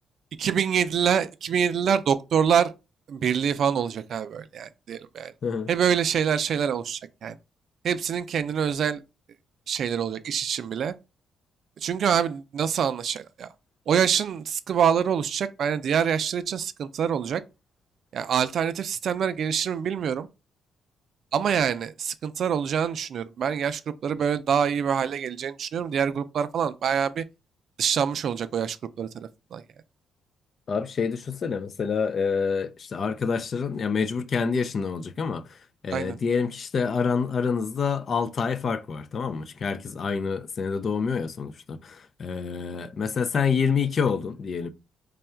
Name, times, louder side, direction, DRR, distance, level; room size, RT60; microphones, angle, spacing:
voice 1, 0.4-2.7 3.1-5.3 5.7-7.4 7.8-9.0 9.7-10.9 11.8-13.5 13.9-17.4 18.1-20.3 21.3-27.2 27.8-29.6 35.9-36.2, right 7 dB, 60° right, 0.4 m, -25 dB
voice 2, 30.7-35.6 35.8-44.7, left 5 dB, 50° left, 0.4 m, -27 dB
3.3 x 2.3 x 4.3 m
cardioid pair, 90°, 0 cm